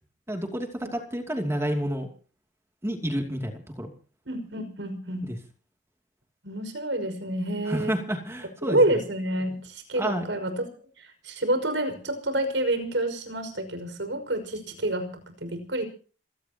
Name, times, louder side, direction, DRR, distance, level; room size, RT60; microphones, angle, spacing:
voice 1, 0.3-2.1 2.8-3.9 5.2-5.4 7.7-9.0 10.0-10.2, equal, 15° right, 3 dB, 2.7 m, -30 dB
voice 2, 4.3-5.2 6.4-8.0 8.6-10.6 11.0-15.8, right 1 dB, 80° right, 7 dB, 5.7 m, -28 dB
28.0 x 17.0 x 3.0 m, 0.40 s
head